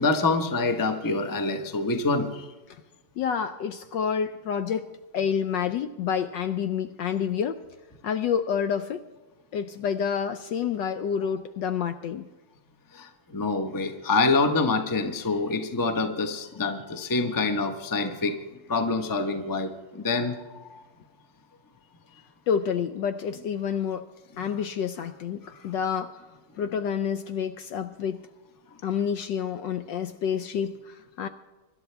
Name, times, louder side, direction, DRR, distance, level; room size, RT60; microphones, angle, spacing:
voice 1, 0.0-2.5 12.9-18.4 18.7-20.4 20.7-20.8 24.5-24.6, left 3 dB, 20° left, 6 dB, 0.5 m, -26 dB
voice 2, 3.2-4.9 5.1-7.6 8.0-9.0 9.5-12.3 22.5-24.1 24.4-26.2 26.6-28.2 28.8-31.3, left 7 dB, 75° left, 9 dB, 1.1 m, -28 dB
25.0 x 12.0 x 3.4 m, 1.2 s
omnidirectional pair, 2.3 m